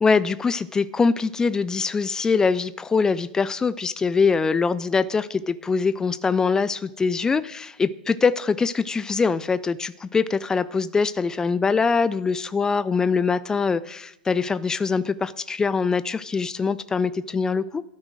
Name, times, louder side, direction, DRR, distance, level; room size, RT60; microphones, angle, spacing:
voice 1, 0.0-17.8, left 5 dB, 10° left, 17 dB, 0.4 m, -23 dB
12.5 x 9.7 x 6.2 m, 0.85 s
figure-of-eight pair, 95°, 5 cm